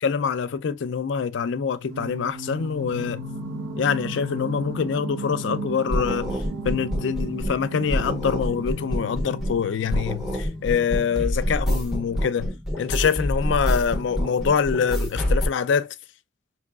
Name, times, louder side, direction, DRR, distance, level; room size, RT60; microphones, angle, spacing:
voice 1, 0.0-3.2 3.8-6.4 6.6-16.0, left 6 dB, 65° left, 0.4 m, -25 dB
Singing, 1.9-10.8, right 1 dB, 70° right, 1.0 m, -35 dB
sound 1, 5.9-7.6 7.9-9.6 9.9-15.5, equal, ahead, 1.0 m, -27 dB
4.6 x 3.0 x 2.3 m
head